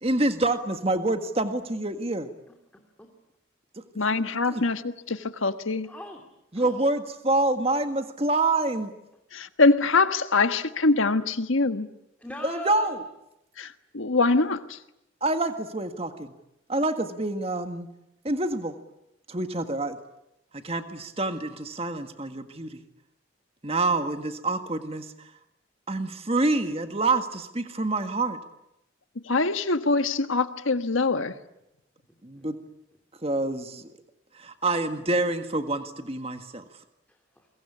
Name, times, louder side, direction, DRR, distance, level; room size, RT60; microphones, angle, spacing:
voice 1, 0.0-2.3 4.5-4.6 6.5-8.9 12.4-13.0 15.2-16.3 16.7-17.9 18.2-18.8 19.3-20.0 20.5-22.8 23.6-25.3 25.9-28.4 32.2-32.6 33.2-33.9 34.3-36.6, right 2 dB, 30° right, 1.7 m, -27 dB
voice 2, 2.7-3.1 5.8-6.2 6.5-6.7 12.2-13.0 32.4-32.5 37.1-37.5, left 1 dB, 10° left, 2.8 m, -40 dB
voice 3, 3.9-5.9 9.3-11.9 13.6-14.8 29.3-31.4, left 3 dB, 90° left, 1.5 m, -24 dB
29.5 x 23.0 x 8.6 m
head